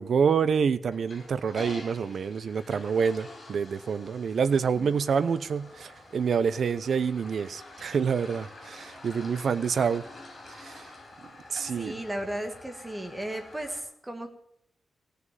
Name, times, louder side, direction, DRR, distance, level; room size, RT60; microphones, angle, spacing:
voice 1, 0.0-10.0 10.5-10.9 11.5-12.0, right 6 dB, 55° right, 0.7 m, -27 dB
Toilet flush, 0.9-13.8, left 2 dB, 30° left, 4.7 m, -47 dB
voice 2, 11.7-14.3, right 1 dB, 10° right, 1.6 m, -35 dB
16.5 x 6.7 x 9.1 m
wide cardioid pair, 175°, 0 cm